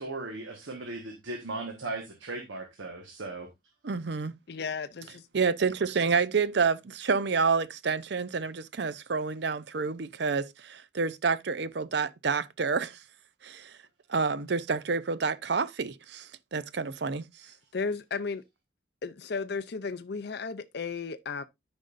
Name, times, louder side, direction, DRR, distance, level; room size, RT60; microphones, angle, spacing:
voice 1, 0.0-3.5, right 2 dB, 80° right, 1.4 m, -37 dB
voice 2, 3.8-4.3 5.3-13.0 13.4-13.7 14.1-17.2, right 5 dB, 60° right, 0.5 m, -28 dB
voice 3, 4.5-5.2 17.7-18.4 19.0-21.4, left 4 dB, 55° left, 0.5 m, -34 dB
13.0 x 5.2 x 2.5 m
head